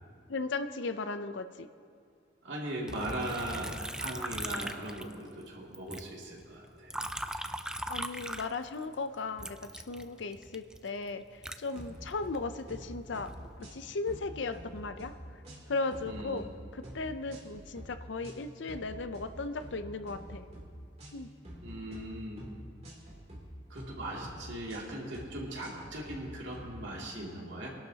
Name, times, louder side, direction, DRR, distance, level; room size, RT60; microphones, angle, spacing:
voice 1, 0.3-1.7 7.9-13.3 13.6-15.1 15.7-16.5 16.7-20.5 21.1-21.3, left 3 dB, 75° left, 10 dB, 0.6 m, -36 dB
voice 2, 2.4-7.0 16.0-16.4 21.6-22.4 23.7-27.7, right 1 dB, 70° right, -3 dB, 2.6 m, -39 dB
Liquid, 2.9-5.5 5.7-8.9 9.4-12.4 13.0-13.5, right 1 dB, 5° right, 0.3 m, -40 dB
sound 1, 11.8-12.4 12.7-12.9 13.1-13.8 14.1-15.1 15.4-16.5 16.8-17.0 17.3-17.9 18.2-18.4 18.7-19.3 19.6-19.8 20.1-20.6 21.0-21.2 21.4-22.0 22.4-22.6 22.8-23.4 23.8-23.9 24.2-24.8 25.1-25.3 25.6-26.2 26.5-26.7, equal, 35° right, 2.9 m, -47 dB
23.0 x 11.5 x 2.9 m, 2.3 s
head